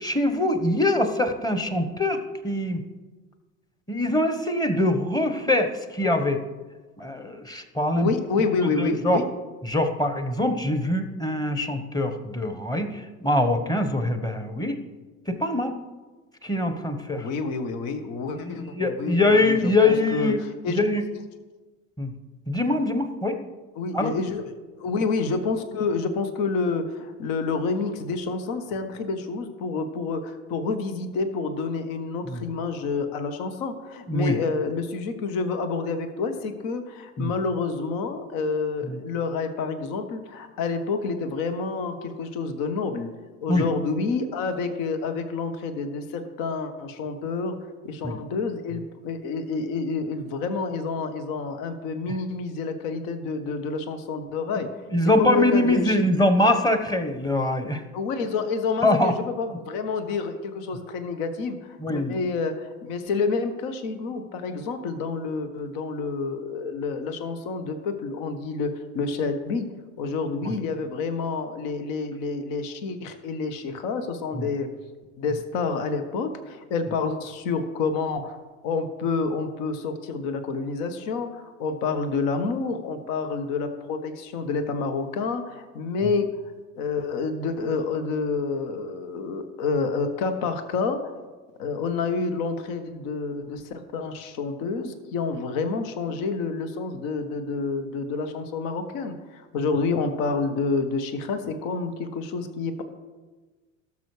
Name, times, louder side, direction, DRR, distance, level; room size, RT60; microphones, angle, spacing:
voice 1, 0.0-2.8 3.9-6.4 7.0-8.1 8.6-9.2 9.7-14.8 15.3-15.7 16.4-17.3 18.4-20.4 20.7-21.0 22.0-22.1 22.5-23.4 23.9-24.1 32.3-32.4 34.1-34.4 37.2-37.3 38.9-39.0 43.5-43.6 48.0-48.2 54.9-57.8 58.8-59.1 61.8-62.2 70.4-70.5 74.3-74.4 86.0-86.1, left 1 dB, 10° left, 7 dB, 1.2 m, -23 dB
voice 2, 7.9-9.3 17.1-20.8 23.7-43.1 43.4-47.6 47.8-54.7 55.0-56.1 57.9-69.7 70.0-74.7 75.2-78.4 78.6-86.3 86.8-91.1 91.6-102.8, left 4 dB, 55° left, 8 dB, 1.2 m, -28 dB
17.5 x 7.0 x 3.3 m, 1.3 s
figure-of-eight pair, 70°, 40 cm